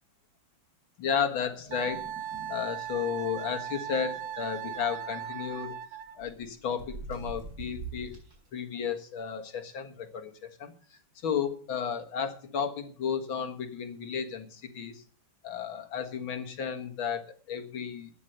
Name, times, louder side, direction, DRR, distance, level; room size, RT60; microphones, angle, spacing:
voice 1, 1.0-2.1 2.5-5.8 6.2-8.2 8.5-10.7 11.2-15.0 15.4-18.1, left 7 dB, 90° left, 5 dB, 2.4 m, -33 dB
sound 1, 1.5-2.5 2.8-2.9 3.2-3.4 4.6-5.7 6.2-8.5, right 2 dB, 55° right, 4.9 m, -44 dB
Wind instrument woodwind instrument, 1.7-6.2, right 10 dB, 85° right, 1.8 m, -38 dB
12.5 x 9.3 x 6.6 m, 0.42 s
omnidirectional pair, 2.1 m